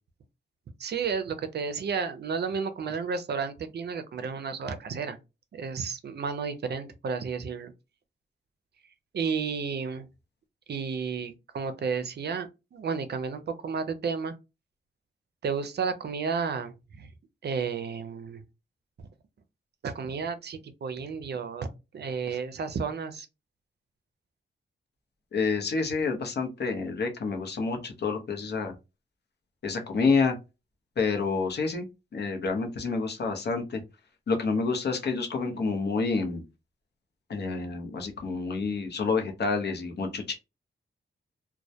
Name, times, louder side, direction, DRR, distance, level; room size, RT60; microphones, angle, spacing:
voice 1, 0.8-5.2 5.5-7.7 9.1-10.1 10.7-14.3 15.4-17.1 17.4-18.4 19.0-19.1 19.8-23.3, right 5 dB, 55° right, 0.5 m, -32 dB
voice 2, 25.3-28.7 29.6-30.4 31.0-31.9 32.1-33.8 34.3-36.4 37.3-40.3, left 4 dB, 55° left, 0.7 m, -28 dB
2.2 x 2.1 x 2.7 m
cardioid pair, 70°, 20 cm